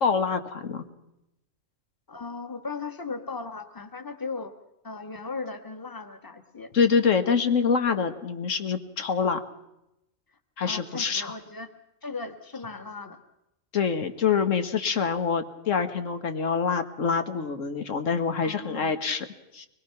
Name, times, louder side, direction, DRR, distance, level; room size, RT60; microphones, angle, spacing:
voice 1, 0.0-0.8 6.7-9.4 10.6-11.3 13.7-19.2 19.5-19.7, left 6 dB, 85° left, 9 dB, 1.7 m, -25 dB
voice 2, 2.1-4.5 4.8-6.7 10.3-10.4 10.7-11.7 12.0-13.2 18.4-19.0, left 4 dB, 15° left, 8 dB, 1.3 m, -37 dB
23.5 x 21.0 x 5.8 m, 0.90 s
omnidirectional pair, 1.3 m